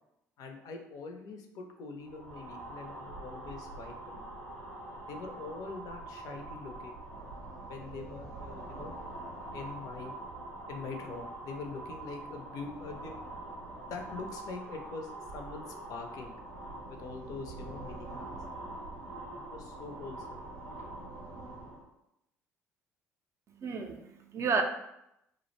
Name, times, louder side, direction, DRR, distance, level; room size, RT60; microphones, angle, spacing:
voice 1, 0.4-4.3 5.1-6.9 7.7-8.9 9.5-10.1 10.7-13.4 13.9-16.3 16.9-18.3 19.3-20.4, left 4 dB, 55° left, 4 dB, 0.4 m, -44 dB
sound 1, 2.0-21.9, right 2 dB, 90° right, 0.5 m, -44 dB
voice 2, 23.5-24.6, right 5 dB, 40° right, 5 dB, 0.3 m, -31 dB
2.4 x 2.1 x 2.9 m, 0.81 s
figure-of-eight pair, 55°, 8 cm